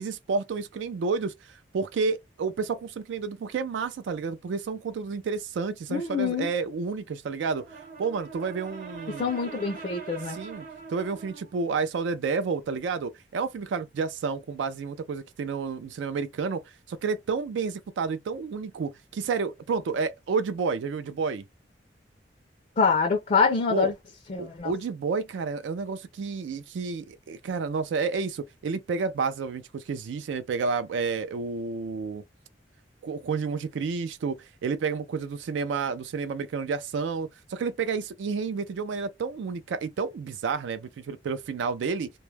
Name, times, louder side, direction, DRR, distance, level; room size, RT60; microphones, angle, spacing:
voice 1, 0.0-9.3 10.3-21.4 23.7-23.9 24.4-32.2 33.0-42.1, right 5 dB, 80° right, 0.3 m, -30 dB
voice 2, 5.9-6.5 9.2-10.4 22.8-23.9 24.3-24.7, left 5 dB, 40° left, 0.4 m, -25 dB
Brass instrument, 7.4-11.6, right 5 dB, 45° right, 0.8 m, -43 dB
2.2 x 2.0 x 3.1 m
head